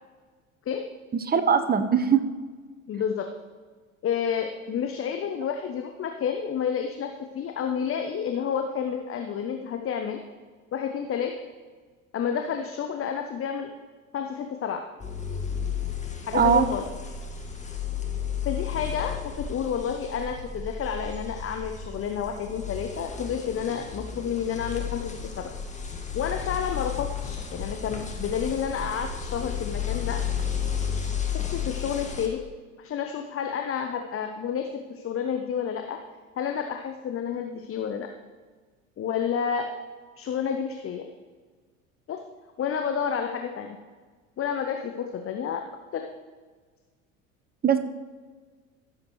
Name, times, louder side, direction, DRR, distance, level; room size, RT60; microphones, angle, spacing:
voice 1, 1.2-2.2 16.3-16.7 47.6-47.8, right 7 dB, 25° right, 9 dB, 0.9 m, -21 dB
voice 2, 2.9-3.3 4.0-10.2 10.7-11.3 12.1-13.7 14.1-14.8 16.3-16.8 18.4-25.5 26.1-30.2 31.3-32.4 32.8-36.0 36.4-38.1 39.0-39.7 40.2-41.0 42.1-42.2 42.6-43.8 44.4-45.6 45.9-46.1, left 7 dB, 35° left, 5 dB, 0.9 m, -30 dB
sound 1, 15.0-32.3, left 7 dB, 15° left, 1.7 m, -33 dB
15.5 x 7.3 x 3.2 m, 1.4 s
hypercardioid pair, 70°, 41 cm